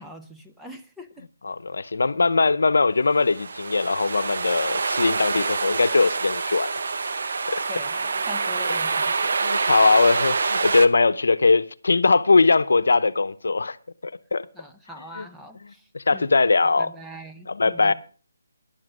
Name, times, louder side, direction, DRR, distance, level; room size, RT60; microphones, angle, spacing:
voice 1, 0.0-1.3 7.7-9.4 14.5-16.3 16.6-17.9, equal, ahead, 0.6 m, -43 dB
voice 2, 1.4-6.7 7.5-7.6 9.4-13.8 14.0-14.5 15.9-16.9 17.5-17.9, left 3 dB, 75° left, 0.7 m, -20 dB
sound 1, 3.2-10.9, right 4 dB, 60° right, 0.9 m, -26 dB
11.5 x 7.4 x 6.1 m
hypercardioid pair, 165°, 0 cm